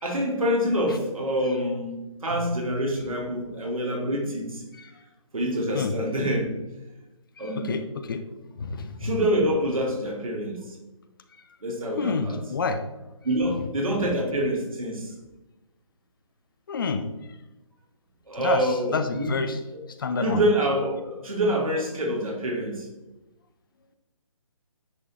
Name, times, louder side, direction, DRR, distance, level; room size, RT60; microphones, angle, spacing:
voice 1, 0.0-4.6 5.3-6.5 7.4-7.7 9.0-10.8 11.6-12.4 13.2-15.1 18.3-19.3 19.7-19.8 20.2-22.9, equal, 85° right, 1 dB, 2.5 m, -26 dB
voice 2, 7.4-8.2 8.6-9.1 12.0-12.8 14.0-14.1 16.7-17.1 18.4-19.6 19.9-20.4, left 4 dB, 40° left, 9 dB, 0.6 m, -29 dB
9.9 x 3.7 x 4.2 m, 1.1 s
hypercardioid pair, 165°, 17 cm